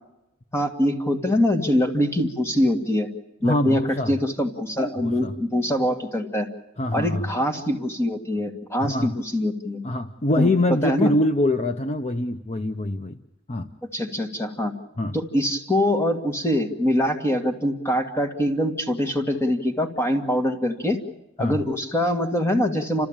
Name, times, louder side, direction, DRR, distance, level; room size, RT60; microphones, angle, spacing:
voice 1, 0.5-3.1 3.4-3.8 4.1-6.5 6.9-9.8 10.4-10.5 10.8-11.1 13.9-14.7 15.1-21.0 21.4-23.1, left 1 dB, 10° left, 4 dB, 2.0 m, -23 dB
voice 2, 3.4-4.1 5.0-5.3 6.8-7.3 8.8-9.2 9.8-13.2 13.5-13.7 15.0-15.2 21.4-21.6, left 1 dB, 35° left, 8 dB, 0.8 m, -24 dB
30.0 x 14.0 x 8.9 m, 0.93 s
head